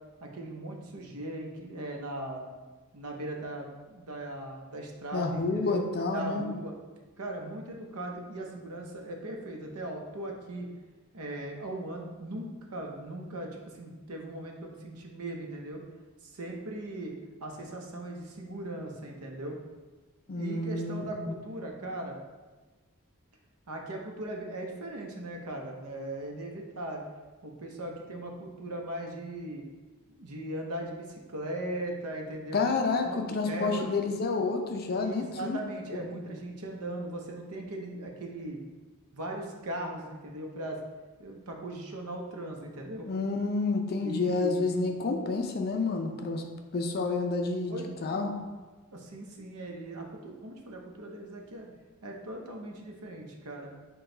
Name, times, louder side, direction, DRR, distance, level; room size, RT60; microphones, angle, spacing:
voice 1, 0.2-2.5 2.9-5.8 6.1-6.7 7.2-10.7 11.1-15.8 16.2-17.1 17.4-19.6 20.4-22.2 23.7-27.0 27.4-29.7 30.1-32.6 33.0-33.9 35.0-38.6 39.1-40.8 41.2-43.1 44.0-44.7 47.7-48.2 48.9-51.7 52.0-53.7, right 1 dB, 85° right, 1 dB, 0.7 m, -39 dB
voice 2, 5.1-6.4 20.3-21.1 32.5-35.6 43.1-46.4 46.7-48.4, left 3 dB, 45° left, 4 dB, 0.5 m, -29 dB
6.0 x 2.3 x 3.8 m, 1.3 s
head